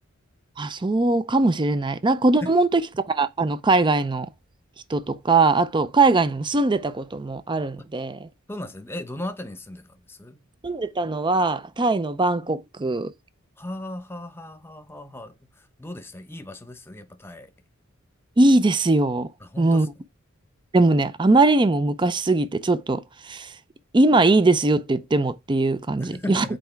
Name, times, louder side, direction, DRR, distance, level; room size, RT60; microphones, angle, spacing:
voice 1, 0.6-2.8 3.1-4.3 4.9-8.3 10.6-13.1 18.4-19.3 19.6-19.9 20.7-23.5 23.9-26.6, right 2 dB, 25° right, 0.5 m, -21 dB
voice 2, 8.5-10.4 13.6-17.5 19.4-19.9 26.0-26.6, left 1 dB, 10° left, 1.0 m, -37 dB
7.7 x 4.6 x 4.5 m
head